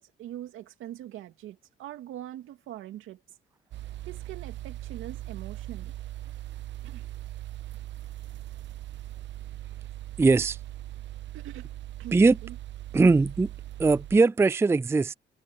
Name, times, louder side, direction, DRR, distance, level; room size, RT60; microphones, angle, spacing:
voice 1, 0.0-3.2 4.1-5.9 6.8-7.1 11.3-11.7 12.0-12.6, right 13 dB, 90° right, 2.5 m, -42 dB
sound 1, 3.7-14.2, right 14 dB, 65° right, 0.6 m, -40 dB
voice 2, 10.2-10.6 12.1-12.4 12.9-13.5 13.8-15.1, right 3 dB, 15° right, 0.4 m, -20 dB
cardioid pair, 90°, 20 cm